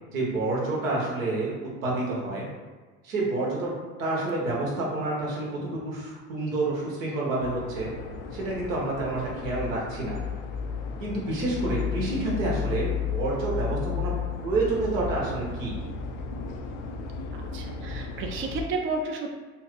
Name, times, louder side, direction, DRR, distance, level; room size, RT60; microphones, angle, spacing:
voice 1, 0.1-1.6 1.8-2.5 3.0-3.7 4.0-7.9 8.3-10.2 11.0-14.1 14.4-15.7, right 2 dB, 80° right, -4 dB, 1.0 m, -28 dB
sound 1, 7.4-18.7, left 6 dB, 60° left, 0.5 m, -33 dB
voice 2, 17.3-19.3, right 3 dB, 30° right, 1 dB, 0.5 m, -32 dB
3.0 x 2.4 x 3.1 m, 1.4 s
hypercardioid pair, 60°, 39 cm